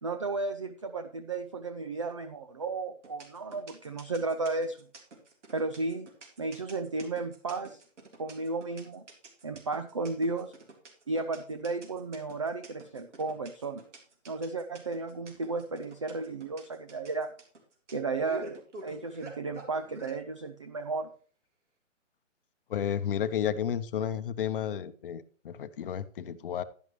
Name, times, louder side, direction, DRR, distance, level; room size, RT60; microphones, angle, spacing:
voice 1, 0.0-4.9 5.5-6.1 6.4-7.8 8.2-9.0 9.4-10.5 11.1-13.8 14.3-17.3 17.9-21.1, right 3 dB, 25° right, 8 dB, 0.4 m, -34 dB
sound 1, 3.0-20.2, right 2 dB, 65° right, 3.6 m, -48 dB
voice 2, 22.7-26.6, left 9 dB, 45° left, 12 dB, 0.8 m, -32 dB
11.0 x 11.0 x 3.1 m, 0.42 s
hypercardioid pair, 145°, 38 cm